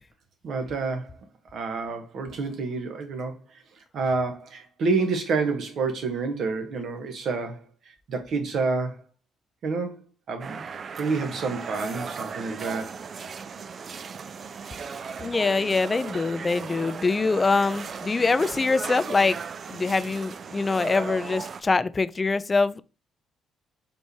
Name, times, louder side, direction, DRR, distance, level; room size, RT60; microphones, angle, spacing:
voice 1, 0.4-1.2 1.5-3.3 3.9-7.6 8.1-9.0 9.6-10.0 10.3-10.6 11.0-13.0, right 4 dB, 65° right, 1.1 m, -28 dB
sound 1, 10.4-21.6, right 6 dB, 50° right, 0.3 m, -36 dB
voice 2, 15.2-19.4 19.7-22.8, left 3 dB, 30° left, 0.3 m, -24 dB
4.5 x 3.3 x 2.8 m
cardioid pair, 90°, 0 cm